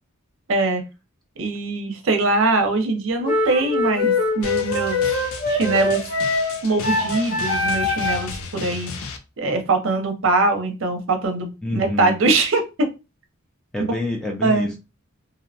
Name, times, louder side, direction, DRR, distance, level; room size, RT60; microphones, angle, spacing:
voice 1, 0.5-0.8 1.4-5.0 5.5-6.0 6.6-8.9 9.4-12.6 14.4-14.7, right 3 dB, 60° right, 0.5 m, -22 dB
sound 1, 3.2-8.4, left 2 dB, 50° left, 1.4 m, -23 dB
Drum, 4.4-9.2, left 5 dB, 85° left, 0.4 m, -34 dB
voice 2, 11.6-12.2 13.7-14.8, left 1 dB, 5° left, 0.3 m, -27 dB
2.6 x 2.0 x 2.6 m
head